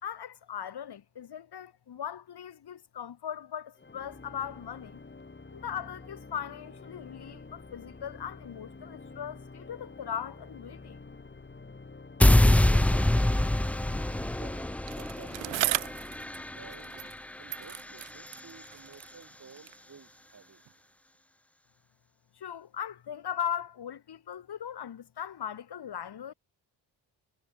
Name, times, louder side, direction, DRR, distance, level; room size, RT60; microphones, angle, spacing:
voice 1, 0.0-5.0 5.5-11.1 22.4-26.3, left 9 dB, 60° left, 5.6 m, -39 dB
Organ, 3.8-15.6, left 3 dB, 25° left, 4.8 m, -48 dB
sound 1, 12.2-18.4, left 1 dB, 5° left, 0.4 m, -25 dB
voice 2, 14.4-16.2 16.6-17.0 17.4-20.6, right 6 dB, 40° right, 5.6 m, -53 dB
Bicycle, 14.9-17.2 17.5-19.9 20.7-20.8, right 16 dB, 85° right, 3.6 m, -36 dB
supercardioid pair, 70°, 45 cm